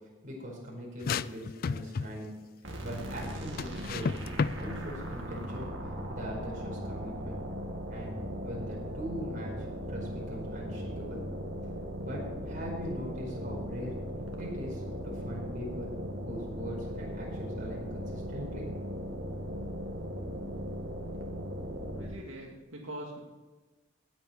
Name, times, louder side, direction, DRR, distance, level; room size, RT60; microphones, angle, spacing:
voice 1, 0.2-2.3 2.8-4.1 4.5-5.7 6.1-7.4 7.9-8.2 8.4-9.5 9.9-11.2 12.0-13.9 14.4-18.7, equal, 40° right, -2 dB, 4.9 m, -41 dB
sound 1, 1.0-2.3 3.6-4.6, left 5 dB, 45° left, 0.3 m, -31 dB
sound 2, 2.6-22.3, equal, 65° right, 2.3 m, -38 dB
voice 2, 22.0-23.2, right 1 dB, 90° right, -2 dB, 2.3 m, -42 dB
18.0 x 8.7 x 4.6 m, 1.3 s
head